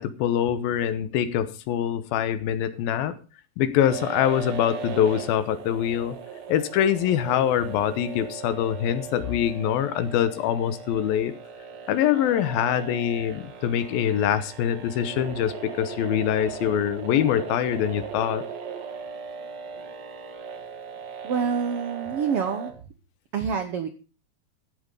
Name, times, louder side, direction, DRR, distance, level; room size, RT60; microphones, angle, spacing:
voice 1, 0.0-3.2 3.6-6.2 6.5-11.3 11.9-18.4, left 10 dB, 90° left, 13 dB, 2.8 m, -24 dB
sound 1, 3.7-22.7, right 6 dB, 55° right, 2.8 m, -38 dB
voice 2, 21.2-22.8 23.3-23.9, right 6 dB, 90° right, 9 dB, 1.3 m, -27 dB
14.5 x 8.3 x 5.3 m, 0.34 s
omnidirectional pair, 4.2 m